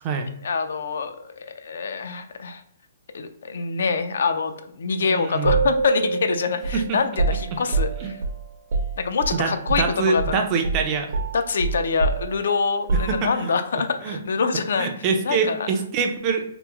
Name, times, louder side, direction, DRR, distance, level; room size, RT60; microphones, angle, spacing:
voice 1, 0.4-2.6 3.1-8.2 9.0-10.4 11.3-14.9 15.2-15.7, left 5 dB, 70° left, 8 dB, 0.4 m, -25 dB
voice 2, 5.0-5.6 6.7-7.0 8.0-8.1 9.3-9.5 9.8-11.2 13.1-13.5 14.0-14.2 14.8-16.4, right 5 dB, 25° right, 4 dB, 0.4 m, -24 dB
sound 1, 5.4-9.9 10.2-10.4 10.6-13.6, right 4 dB, 60° right, 0.7 m, -26 dB
2.9 x 2.0 x 3.4 m, 0.69 s
hypercardioid pair, 170°, 0 cm